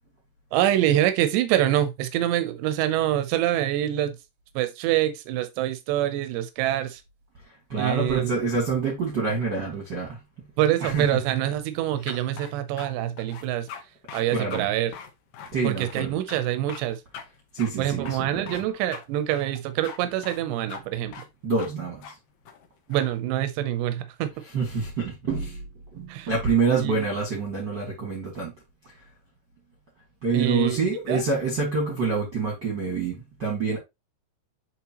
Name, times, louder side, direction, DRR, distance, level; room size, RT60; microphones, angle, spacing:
voice 1, 0.5-4.2 4.6-7.0 7.8-8.3 10.6-13.7 14.1-14.9 15.6-17.0 17.8-21.2 22.9-24.3 26.1-26.3 26.7-27.1 30.3-30.8 31.1-31.2, right 12 dB, 85° right, 3.0 m, -25 dB
voice 2, 7.7-10.2 10.8-11.1 14.3-14.7 15.5-16.1 17.5-18.6 21.4-22.0 24.5-25.6 25.9-28.5 30.2-33.8, right 4 dB, 40° right, 1.6 m, -26 dB
sound 1, 12.1-12.9 13.2-13.8 14.1-14.2 14.5-14.7 14.9-16.0 16.3-16.4 16.7-16.8 17.1-17.2 17.6-17.7 18.0-18.6 18.9-19.0 19.3-20.0 20.2-20.4 20.7-20.8 21.1-21.3 21.6-21.7 22.0-22.1 22.4-23.1, left 7 dB, 70° left, 2.2 m, -41 dB
8.3 x 4.5 x 3.0 m
omnidirectional pair, 4.8 m